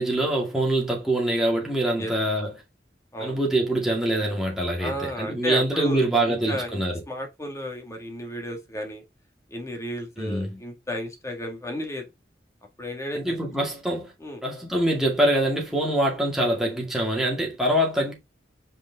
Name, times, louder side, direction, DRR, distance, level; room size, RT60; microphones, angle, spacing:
voice 1, 0.0-2.5 3.2-6.9 10.2-10.6 13.1-14.1 14.4-18.1, right 1 dB, ahead, 2.3 m, -24 dB
voice 2, 4.8-6.8 7.1-9.0 9.5-12.0 12.8-13.4 14.2-14.4, left 1 dB, 15° left, 1.8 m, -33 dB
5.4 x 4.9 x 3.5 m
head